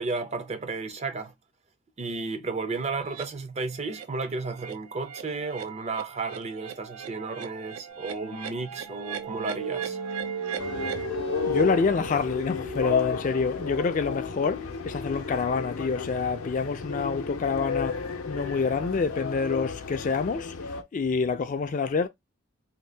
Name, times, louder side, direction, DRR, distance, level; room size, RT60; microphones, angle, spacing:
voice 1, 0.0-1.3 2.0-10.0, right 3 dB, 30° right, 0.4 m, -33 dB
sound 1, 3.1-3.3 3.7-4.1 4.4-11.1, right 8 dB, 85° right, 0.5 m, -40 dB
sound 2, 8.1-19.6, right 1 dB, 55° right, 0.7 m, -39 dB
sound 3, 10.6-20.8, left 5 dB, 80° left, 0.6 m, -32 dB
voice 2, 11.5-22.1, left 4 dB, 35° left, 0.3 m, -27 dB
2.7 x 2.2 x 3.3 m
head